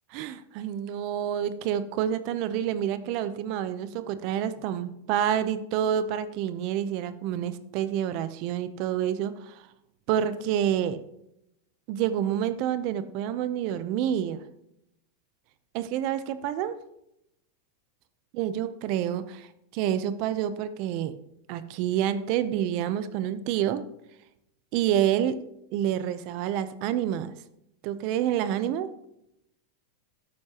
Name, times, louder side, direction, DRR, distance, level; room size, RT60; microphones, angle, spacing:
voice 1, 0.1-9.6 10.1-11.0 11.9-14.4 15.7-16.8 18.3-19.5 19.7-21.2 21.5-23.9 24.7-25.4 25.7-27.3 27.8-28.9, right 10 dB, 35° right, 13 dB, 0.6 m, -28 dB
12.5 x 9.4 x 2.9 m, 0.82 s
supercardioid pair, 175°, 0 cm